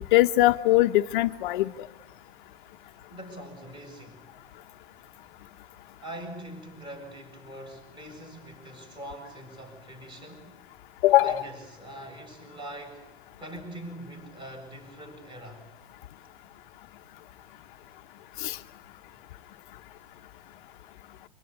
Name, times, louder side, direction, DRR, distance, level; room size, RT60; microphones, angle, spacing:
voice 1, 0.1-1.7 11.0-11.4 18.4-18.6, left 16 dB, 50° left, 7 dB, 1.0 m, -21 dB
voice 2, 3.1-4.2 6.0-10.5 11.2-13.0 13.4-15.6, right 1 dB, 15° right, 5 dB, 7.3 m, -43 dB
26.5 x 26.0 x 8.5 m, 0.92 s
supercardioid pair, 170°, 32 cm